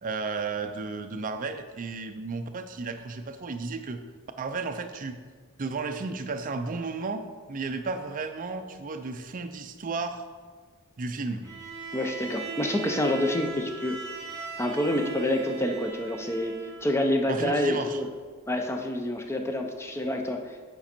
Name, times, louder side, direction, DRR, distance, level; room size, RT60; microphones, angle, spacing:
voice 1, 0.0-4.0 4.4-5.2 5.6-10.2 11.0-11.4 17.3-18.0, right 4 dB, 40° right, 7 dB, 0.5 m, -33 dB
Bowed string instrument, 11.4-17.0, right 5 dB, 15° right, 1.1 m, -39 dB
voice 2, 11.9-14.0 14.6-18.1 18.5-20.6, left 1 dB, 10° left, 3 dB, 0.6 m, -27 dB
8.5 x 5.3 x 4.3 m, 1.5 s
head